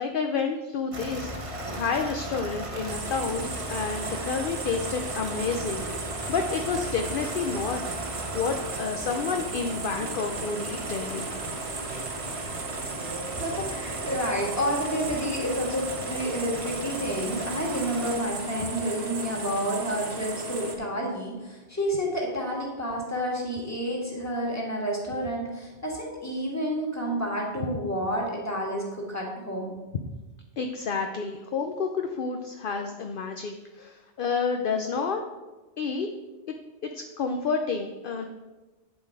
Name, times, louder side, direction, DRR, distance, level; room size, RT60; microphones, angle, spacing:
voice 1, 0.0-7.8 8.3-11.3 11.9-12.1 27.7-27.8 30.6-35.2 35.8-36.1 36.8-38.3, left 5 dB, 55° left, 5 dB, 0.8 m, -30 dB
sound 1, 0.9-18.2, right 1 dB, 30° right, 1.0 m, -37 dB
sound 2, 2.9-20.8, right 3 dB, 65° right, 1.4 m, -36 dB
voice 2, 13.3-29.7, equal, 15° left, -2 dB, 1.9 m, -30 dB
8.4 x 7.4 x 4.7 m, 1.2 s
omnidirectional pair, 1.2 m